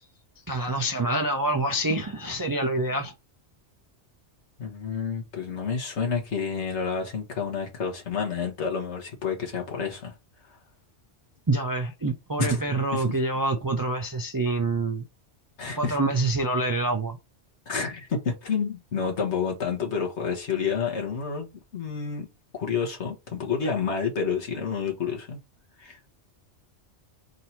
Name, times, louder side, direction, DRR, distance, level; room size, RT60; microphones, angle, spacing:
voice 1, 0.5-3.1 11.5-15.0 15.8-17.2, right 2 dB, 35° right, 0.3 m, -26 dB
voice 2, 4.6-10.1 12.4-12.6 12.9-13.0 15.6-16.0 17.7-22.3 22.5-25.4 25.8-26.0, left 6 dB, 70° left, 1.5 m, -29 dB
3.8 x 2.7 x 4.3 m
omnidirectional pair, 1.2 m